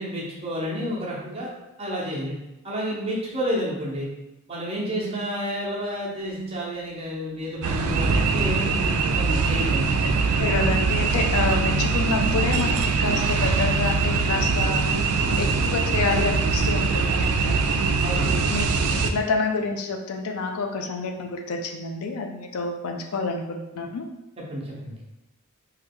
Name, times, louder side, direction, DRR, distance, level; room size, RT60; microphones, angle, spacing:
voice 1, 0.0-1.5 1.8-2.4 2.6-4.1 4.5-10.0 15.2-15.4 18.0-18.7 24.5-25.0, equal, 25° right, -5 dB, 0.8 m, -30 dB
sound 1, 7.6-19.1, right 4 dB, 85° right, 0.3 m, -22 dB
voice 2, 10.4-14.8 15.4-17.5 18.5-18.6 19.0-24.1, left 4 dB, 80° left, 4 dB, 0.4 m, -28 dB
3.1 x 2.3 x 3.5 m, 0.96 s
head